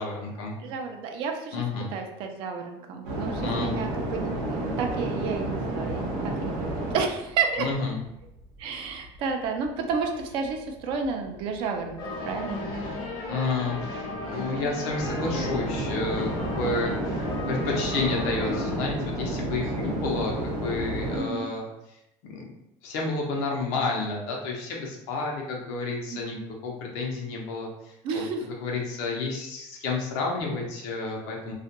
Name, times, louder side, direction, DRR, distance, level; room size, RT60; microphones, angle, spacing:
voice 1, 0.0-0.6 1.5-1.9 3.4-3.9 7.6-8.0 13.3-17.2 17.5-21.7 22.3-22.4 22.8-31.5, left 3 dB, 80° left, -1 dB, 0.7 m, -30 dB
voice 2, 0.6-1.6 1.9-7.7 8.6-12.0 12.2-12.7 21.1-21.5 26.1-26.5 28.0-28.5, right 5 dB, 55° right, 4 dB, 0.4 m, -31 dB
sound 1, 3.0-9.3 9.6-21.2, right 1 dB, 85° right, 0.7 m, -31 dB
sound 2, 12.0-18.8, left 2 dB, 45° left, 0.7 m, -34 dB
2.4 x 2.1 x 2.8 m, 0.85 s
cardioid pair, 155°, 11 cm